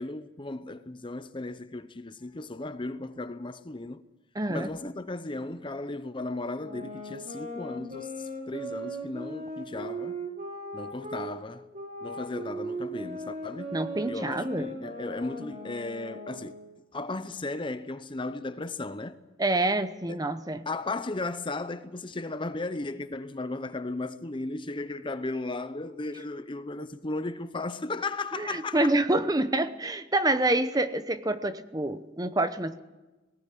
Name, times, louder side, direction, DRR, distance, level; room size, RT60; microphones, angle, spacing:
voice 1, 0.0-4.0 4.5-10.2 10.7-11.7 12.0-13.8 14.0-16.5 16.9-19.2 20.1-20.2 20.7-29.0, left 2 dB, 25° left, 0.8 m, -35 dB
voice 2, 4.3-4.7 13.7-14.7 19.4-20.6 28.3-32.8, right 2 dB, 20° right, 0.9 m, -27 dB
sound 1, 6.6-11.3 11.7-16.7, right 1 dB, 40° right, 3.9 m, -38 dB
18.5 x 18.0 x 9.3 m
head